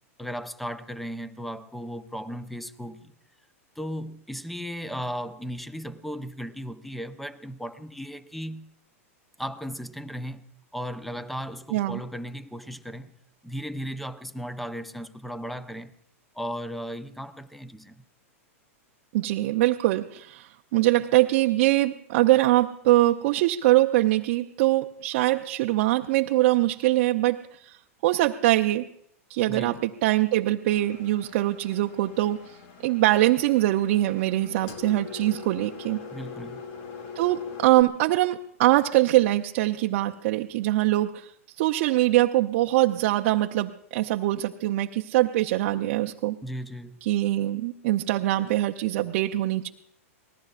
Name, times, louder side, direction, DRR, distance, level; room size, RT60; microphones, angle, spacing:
voice 1, 0.2-3.1 3.8-8.7 9.4-13.1 13.4-15.9 16.3-18.0 29.5-29.8 36.1-36.7 46.4-47.0, equal, ahead, 0.8 m, -36 dB
voice 2, 19.1-27.8 28.0-28.9 29.3-32.6 32.8-36.0 37.2-41.3 41.6-46.4 47.1-49.7, right 16 dB, 55° right, 0.7 m, -23 dB
Engine, 30.7-37.8, left 5 dB, 50° left, 1.9 m, -42 dB
26.0 x 19.5 x 2.5 m
hypercardioid pair, 115°, 8 cm